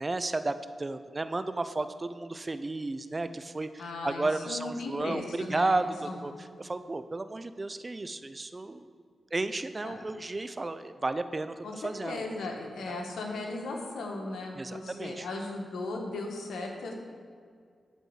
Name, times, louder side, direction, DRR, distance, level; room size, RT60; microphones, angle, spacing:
voice 1, 0.0-6.3 6.6-8.9 9.3-12.2 12.9-13.0 14.5-15.3, right 2 dB, 35° right, 11 dB, 0.7 m, -33 dB
voice 2, 3.8-5.8 6.1-6.2 9.8-10.0 11.6-11.7 12.0-16.9, left 2 dB, 85° left, 1 dB, 1.5 m, -37 dB
12.5 x 4.5 x 8.2 m, 2.1 s
supercardioid pair, 45°, 0 cm